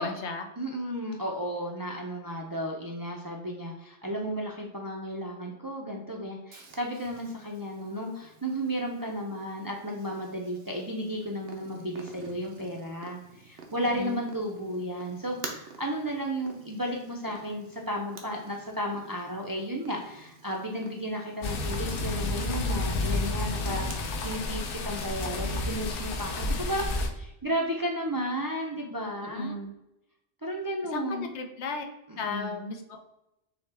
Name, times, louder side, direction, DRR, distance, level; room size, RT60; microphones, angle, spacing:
voice 1, 0.0-0.4 13.9-14.2 29.2-29.7 30.9-31.9 32.2-33.0, left 3 dB, 85° left, 5 dB, 1.0 m, -35 dB
voice 2, 0.6-29.6 30.4-31.3 32.1-32.5, equal, 30° right, 0 dB, 0.4 m, -33 dB
Purr, 6.5-24.5, right 4 dB, 85° right, 1.0 m, -49 dB
sound 1, 21.4-27.1, left 2 dB, 60° left, 0.7 m, -30 dB
6.1 x 2.2 x 3.3 m, 0.90 s
omnidirectional pair, 1.1 m